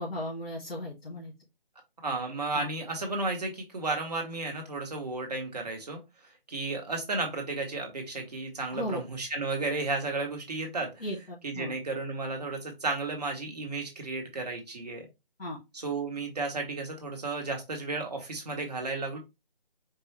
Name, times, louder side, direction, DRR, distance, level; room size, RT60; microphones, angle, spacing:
voice 1, 0.0-1.3 2.5-2.7 8.7-9.0 11.0-11.7 15.4-15.6, left 1 dB, 85° left, -6 dB, 2.2 m, -36 dB
voice 2, 2.0-6.0 6.5-11.0 11.4-15.1 15.7-19.2, right 3 dB, 45° right, 3 dB, 1.1 m, -33 dB
4.6 x 2.3 x 3.1 m, 0.23 s
figure-of-eight pair, 170°, 29 cm